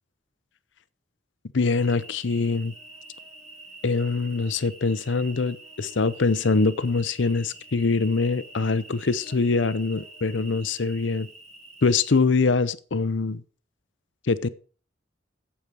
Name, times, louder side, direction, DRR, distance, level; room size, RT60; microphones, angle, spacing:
voice 1, 1.5-2.7 3.8-11.3 11.8-13.4 14.3-14.5, left 4 dB, 70° left, 0.6 m, -24 dB
Cricket, 1.8-12.2, right 2 dB, 35° right, 3.2 m, -46 dB
8.7 x 8.1 x 6.1 m
head